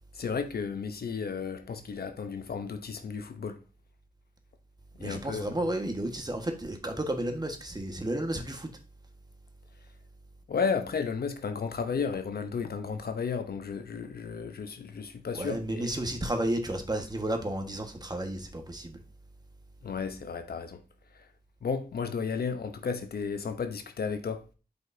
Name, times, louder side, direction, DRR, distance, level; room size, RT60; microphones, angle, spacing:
voice 1, 0.1-3.6 5.0-5.5 10.5-15.9 19.8-20.8 21.1-21.3 21.6-24.4, left 5 dB, 75° left, 0.9 m, -33 dB
voice 2, 5.0-8.7 15.3-19.0, right 1 dB, 25° right, 1.5 m, -32 dB
7.9 x 5.2 x 2.8 m
cardioid pair, 55°, 16 cm